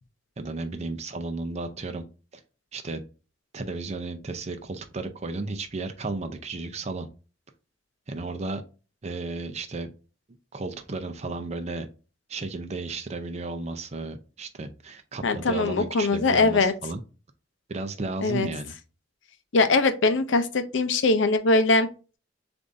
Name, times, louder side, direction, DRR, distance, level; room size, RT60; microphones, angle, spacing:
voice 1, 0.4-2.0 2.7-3.0 3.5-7.1 8.1-8.6 9.0-9.9 10.5-11.9 12.3-17.0 17.7-18.7, right 3 dB, 35° right, 0.5 m, -33 dB
voice 2, 15.2-16.7 18.2-18.5 19.5-21.9, left 3 dB, 80° left, 0.6 m, -21 dB
6.8 x 2.6 x 2.6 m
head